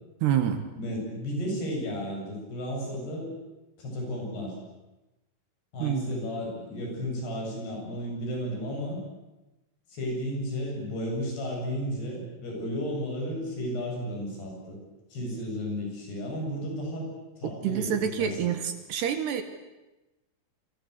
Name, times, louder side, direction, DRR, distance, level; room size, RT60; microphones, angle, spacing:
voice 1, 0.2-0.6 5.8-6.0 17.4-19.4, right 9 dB, 65° right, 9 dB, 3.3 m, -27 dB
voice 2, 0.8-3.3 3.8-4.6 5.7-9.0 9.9-14.8 15.1-17.1 17.4-18.6, equal, 55° left, 0 dB, 9.8 m, -33 dB
28.0 x 25.0 x 8.2 m, 1.0 s
omnidirectional pair, 5.5 m